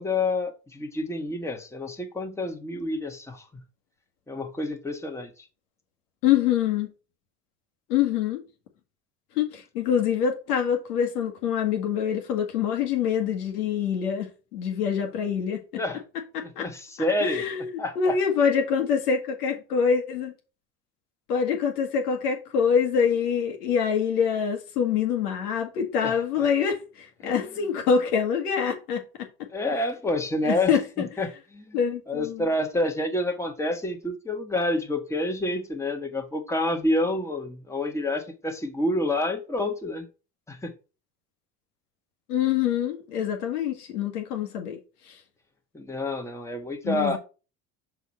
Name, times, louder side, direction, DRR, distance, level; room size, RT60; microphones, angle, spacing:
voice 1, 0.0-3.6 4.3-5.5 15.8-16.0 16.4-17.4 17.8-18.2 26.0-26.2 27.2-27.4 29.5-31.8 32.1-40.1 40.5-40.7 45.7-47.2, left 1 dB, 5° left, 1.3 m, -28 dB
voice 2, 6.2-6.9 7.9-8.4 9.3-15.6 16.3-16.6 17.2-20.3 21.3-29.3 30.4-31.1 31.7-32.5 42.3-44.8 45.1-45.2 46.8-47.2, left 7 dB, 85° left, 1.4 m, -25 dB
6.1 x 4.1 x 4.2 m
hypercardioid pair, 70°, 45 cm